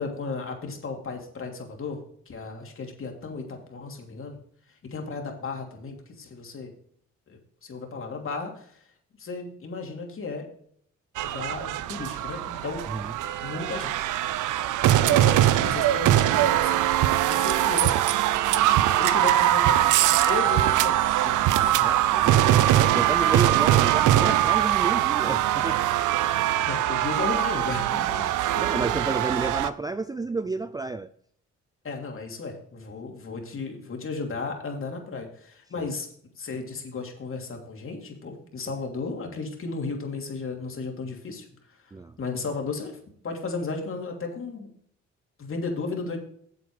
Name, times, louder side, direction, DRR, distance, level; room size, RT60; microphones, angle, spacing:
voice 1, 0.0-2.0 2.3-4.4 4.8-6.7 7.3-8.7 9.2-10.5 11.2-12.8 13.4-14.1 15.0-16.8 17.3-17.9 19.0-22.2 26.7-28.3 31.8-36.1 36.4-41.5 42.2-43.0 43.2-44.7 45.4-46.2, left 4 dB, 45° left, 2.9 m, -34 dB
sound 1, 11.2-29.7, right 13 dB, 80° right, 0.6 m, -22 dB
voice 2, 21.5-25.8 28.1-31.1 35.8-35.9 41.9-42.2, right 3 dB, 15° right, 0.4 m, -31 dB
8.3 x 7.7 x 4.9 m
cardioid pair, 90°, 30 cm